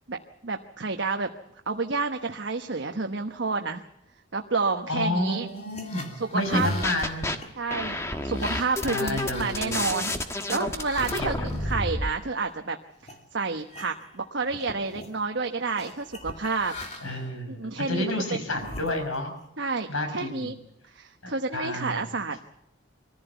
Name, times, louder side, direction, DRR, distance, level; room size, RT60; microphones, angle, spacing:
voice 1, 0.1-1.3 1.7-3.8 4.3-5.5 6.2-6.7 7.6-12.8 13.0-16.8 17.6-18.1 19.6-20.6 20.9-22.4, right 4 dB, 60° right, 5 dB, 1.1 m, -30 dB
voice 2, 4.9-7.4 8.8-9.9 11.1-11.8 17.0-19.3 19.9-20.5 21.2-22.0, left 1 dB, 90° left, 6 dB, 5.6 m, -30 dB
sound 1, 5.5-12.5 13.0-13.2 13.6-14.2 14.5-15.2 15.8-17.3 17.9-19.4, left 2 dB, 35° left, 2.6 m, -43 dB
sound 2, 6.5-7.3 7.7-12.1, left 1 dB, 15° left, 1.4 m, -29 dB
23.5 x 15.0 x 8.1 m, 0.80 s
head